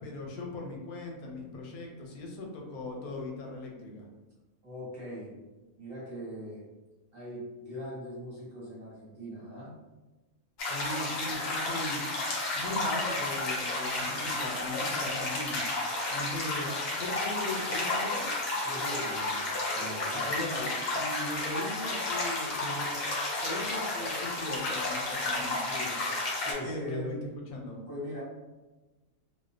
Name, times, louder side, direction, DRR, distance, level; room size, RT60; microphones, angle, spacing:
voice 1, 0.0-4.1 10.6-12.0 12.5-15.6 16.1-18.4 20.1-23.1 23.4-26.0 26.6-27.2 27.5-27.8, left 2 dB, 85° left, 0 dB, 1.0 m, -39 dB
voice 2, 4.6-5.4 5.8-6.6 7.1-9.7 18.6-19.5 19.7-20.3 26.4-27.2 27.9-28.2, equal, 45° right, -8 dB, 0.9 m, -40 dB
sound 1, 10.6-26.5, left 2 dB, 60° left, 0.7 m, -32 dB
2.4 x 2.0 x 2.4 m, 1.1 s
omnidirectional pair, 1.5 m